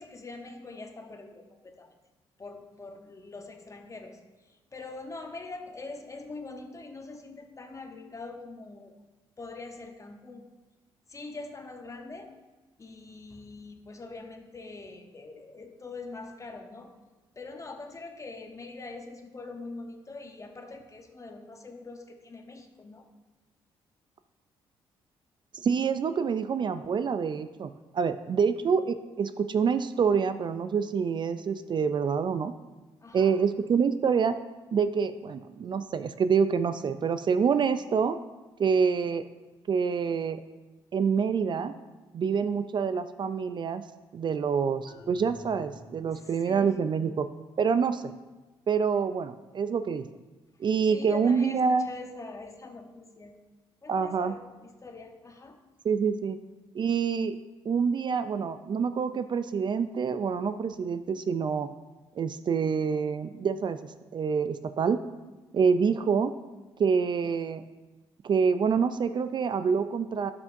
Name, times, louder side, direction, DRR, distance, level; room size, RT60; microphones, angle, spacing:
voice 1, 0.0-1.9 2.4-9.0 9.4-10.4 11.1-12.3 12.8-16.9 17.3-23.1 33.0-33.4 46.1-46.8 50.9-53.4 53.8-55.6, left 3 dB, 30° left, 5 dB, 1.0 m, -43 dB
voice 2, 25.6-32.5 33.1-34.4 34.7-38.2 38.6-39.2 39.7-40.4 40.9-41.7 42.1-43.8 44.1-47.3 47.6-48.1 48.7-50.1 50.6-51.9 53.9-54.3 55.8-56.4 56.7-57.4 57.7-61.7 62.2-65.0 65.5-66.3 66.8-67.6 68.2-70.3, right 6 dB, 45° right, 11 dB, 0.4 m, -26 dB
sound 1, 44.9-46.3, left 1 dB, 75° left, 1.4 m, -49 dB
12.0 x 5.7 x 2.6 m, 1.2 s
supercardioid pair, 65°, 11 cm